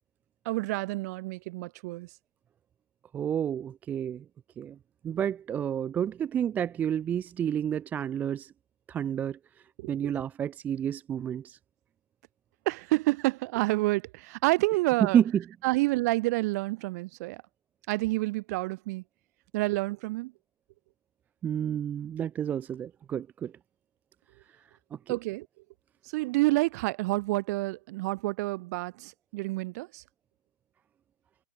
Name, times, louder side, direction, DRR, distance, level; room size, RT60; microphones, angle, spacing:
voice 1, 0.4-2.1 9.8-10.1 12.6-15.2 15.6-17.4 17.9-19.0 19.5-20.3 25.1-25.5 26.1-30.0, right 21 dB, 35° right, 1.6 m, -28 dB
voice 2, 3.1-4.2 4.6-4.8 5.0-8.5 8.9-9.4 9.9-11.6 15.0-15.4 21.4-23.5 24.9-25.2, right 9 dB, 10° right, 0.5 m, -30 dB
figure-of-eight pair, 130°, 16 cm